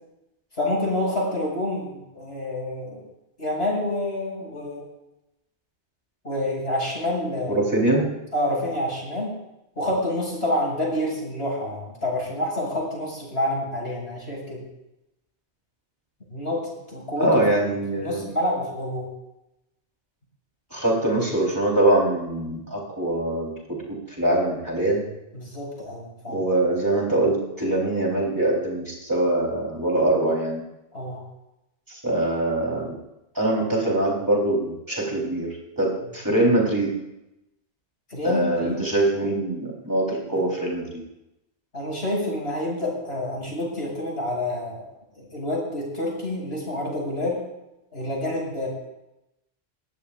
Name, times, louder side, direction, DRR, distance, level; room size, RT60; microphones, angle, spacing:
voice 1, 0.6-3.0 3.4-4.8 6.2-7.6 8.3-9.3 9.8-14.6 16.3-17.4 17.9-19.1 25.3-26.4 30.9-31.2 38.1-38.8 41.7-44.8 45.2-47.4 47.9-48.7, left 1 dB, 90° left, -4 dB, 6.7 m, -28 dB
voice 2, 7.5-8.1 17.2-18.2 20.7-23.8 24.1-25.1 26.3-30.6 31.9-33.0 33.4-37.0 38.2-41.0, right 1 dB, 20° right, -3 dB, 3.9 m, -23 dB
21.5 x 15.5 x 2.5 m, 0.91 s
omnidirectional pair, 1.1 m